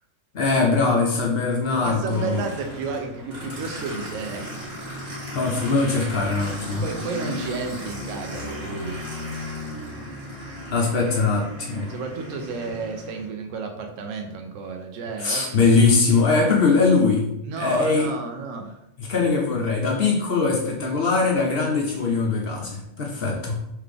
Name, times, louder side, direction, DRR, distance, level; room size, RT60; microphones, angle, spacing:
voice 1, 0.3-2.4 5.3-6.8 10.7-11.9 15.2-17.3 17.6-18.1 19.0-23.6, left 4 dB, 55° left, 0 dB, 0.8 m, -21 dB
voice 2, 1.7-4.5 6.8-9.0 11.7-15.7 17.4-18.8, right 4 dB, 75° right, 4 dB, 1.0 m, -32 dB
Aircraft, 2.1-13.3, left 1 dB, 45° right, 1.7 m, -35 dB
3.8 x 3.2 x 3.3 m, 0.83 s
omnidirectional pair, 1.3 m